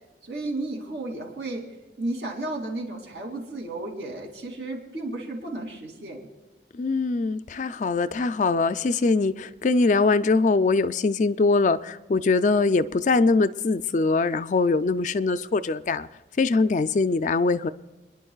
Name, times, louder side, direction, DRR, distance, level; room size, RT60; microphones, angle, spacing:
voice 1, 0.2-1.7 2.0-6.2, right 2 dB, 70° right, 2.8 m, -33 dB
voice 2, 6.7-16.1 16.4-17.7, left 3 dB, 40° left, 0.4 m, -22 dB
29.0 x 10.5 x 2.4 m
head